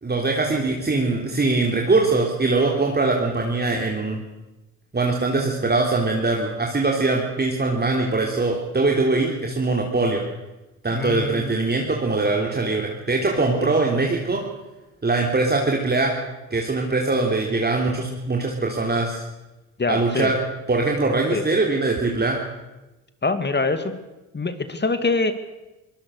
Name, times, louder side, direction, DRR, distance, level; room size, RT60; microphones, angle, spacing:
voice 1, 0.0-4.2 4.9-10.2 10.8-14.4 15.0-16.1 16.5-19.2 19.9-20.4 20.7-22.4, right 3 dB, 25° right, 0 dB, 3.6 m, -22 dB
voice 2, 10.9-11.6 13.6-13.7 19.8-20.3 21.3-21.5 23.2-23.9 24.3-25.3, left 3 dB, 25° left, 10 dB, 2.3 m, -24 dB
23.0 x 19.5 x 6.7 m, 1.0 s
hypercardioid pair, 60°, 41 cm